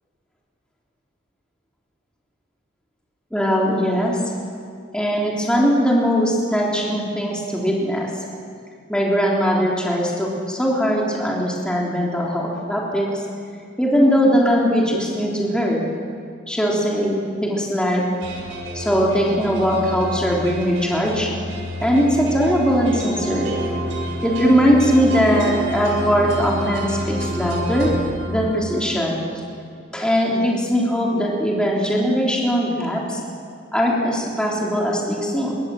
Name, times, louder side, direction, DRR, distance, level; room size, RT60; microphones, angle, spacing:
voice 1, 3.3-4.2 4.9-8.1 8.9-13.2 13.8-15.8 16.5-18.1 18.7-21.3 21.8-23.5 24.2-27.9 28.3-29.2 29.9-33.2 33.7-35.5, equal, 5° left, -3 dB, 3.7 m, -20 dB
sound 1, 18.2-28.9, equal, 75° right, 7.5 m, -29 dB
27.5 x 24.5 x 7.9 m, 2.3 s
head